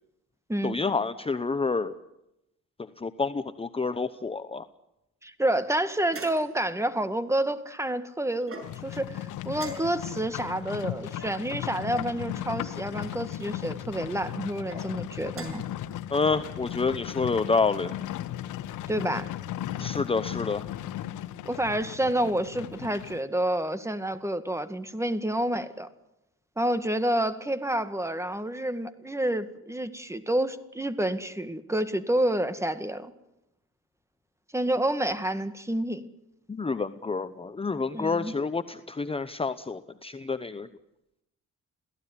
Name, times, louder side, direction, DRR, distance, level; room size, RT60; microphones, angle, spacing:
voice 1, 0.6-1.9 3.0-4.7 16.1-17.9 19.8-20.6 36.5-40.7, left 4 dB, 20° left, 11 dB, 0.9 m, -28 dB
voice 2, 5.2-15.6 18.9-19.3 21.5-25.9 26.6-33.1 34.5-36.0 37.9-38.3, right 1 dB, 10° right, 11 dB, 2.0 m, -29 dB
sound 1, 5.6-6.7 8.4-9.0 9.5-10.2 11.1-12.1 13.0-13.5 14.5-14.8 15.3-15.7, right 1 dB, 45° right, 7.5 m, -44 dB
Livestock farm animals working animals, 8.6-23.2, left 12 dB, 85° left, 1.2 m, -36 dB
27.5 x 17.0 x 10.0 m, 0.88 s
cardioid pair, 90°, 30 cm